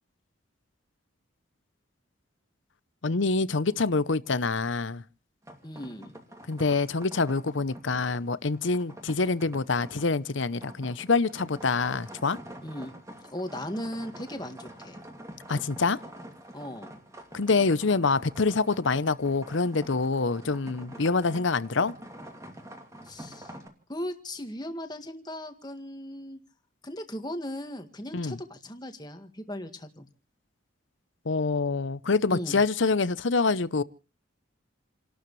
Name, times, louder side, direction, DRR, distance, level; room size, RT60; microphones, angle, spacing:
voice 1, 3.0-5.0 6.5-12.4 15.5-16.0 17.3-21.9 28.1-28.4 31.3-33.8, left 4 dB, 70° left, 0.8 m, -26 dB
sound 1, 5.4-23.7, right 1 dB, 15° right, 2.6 m, -46 dB
voice 2, 5.6-6.1 12.6-12.9 13.2-15.0 16.5-16.9 23.0-23.5 23.9-26.4 26.8-30.1 32.3-32.6, left 1 dB, 20° left, 1.8 m, -37 dB
29.5 x 12.5 x 3.2 m
head